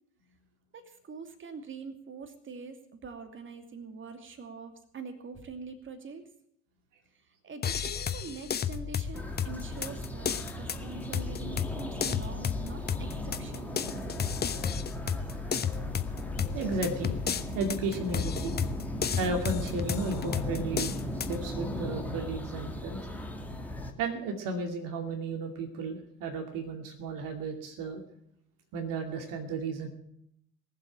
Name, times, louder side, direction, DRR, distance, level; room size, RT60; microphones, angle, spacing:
voice 1, 0.7-6.2 7.1-14.2, right 4 dB, 30° right, 6 dB, 2.7 m, -44 dB
sound 1, 7.6-21.4, left 7 dB, 25° left, 1.0 m, -33 dB
sound 2, 9.1-23.9, equal, 5° left, 2.4 m, -37 dB
voice 2, 16.5-17.1 17.5-18.6 19.2-21.0 21.3-23.0 24.0-28.0 28.7-29.9, right 3 dB, 50° right, 4 dB, 2.5 m, -34 dB
20.0 x 7.7 x 8.9 m, 0.73 s
figure-of-eight pair, 65°, 42 cm